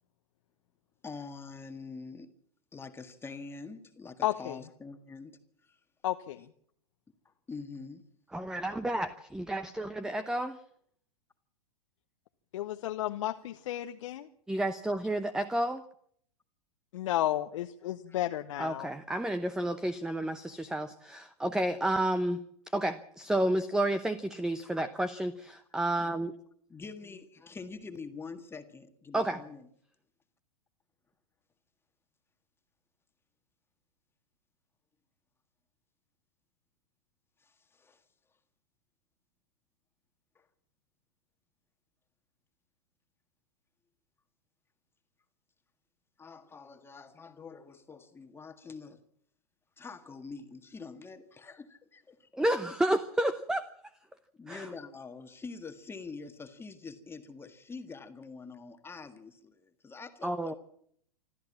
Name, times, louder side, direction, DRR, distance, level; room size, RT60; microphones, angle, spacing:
voice 1, 1.0-2.3 2.7-5.8 7.3-8.0 18.1-18.2 26.7-29.7 37.4-38.0 40.4-40.5 46.2-49.0 49.8-52.5 54.3-60.5, left 4 dB, 10° left, 1.7 m, -45 dB
voice 2, 4.2-4.6 6.0-6.4 12.5-14.3 16.9-18.9, left 13 dB, 55° left, 1.0 m, -32 dB
voice 3, 8.3-10.6 14.5-15.8 18.6-22.4 22.7-26.3 29.1-29.4 52.4-53.7 54.5-54.7 60.2-60.5, right 1 dB, 5° right, 0.9 m, -31 dB
26.0 x 14.0 x 7.5 m
figure-of-eight pair, 100°, 20 cm